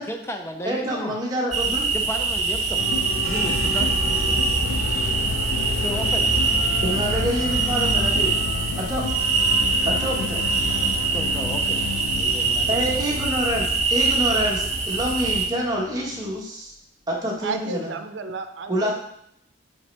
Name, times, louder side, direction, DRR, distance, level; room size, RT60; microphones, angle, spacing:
voice 1, 0.0-1.2 1.9-2.8 3.1-3.9 5.8-6.4 11.1-11.9 12.1-13.2, equal, 15° left, 4 dB, 0.5 m, -33 dB
voice 2, 0.6-1.9 6.8-8.3 8.8-9.0 9.8-10.4 12.7-16.7 17.1-17.9 18.7-18.9, equal, 20° right, -3 dB, 1.2 m, -26 dB
sound 1, 1.5-15.5, right 4 dB, 40° right, 0.8 m, -23 dB
sound 2, 2.8-16.4, left 4 dB, 80° left, 0.4 m, -32 dB
sound 3, 3.2-12.6 12.9-14.2 14.5-15.0 15.4-16.0, equal, 55° right, 1.0 m, -35 dB
voice 3, 17.4-18.9, right 4 dB, 80° right, 7 dB, 0.6 m, -32 dB
6.0 x 5.6 x 3.3 m, 0.73 s
head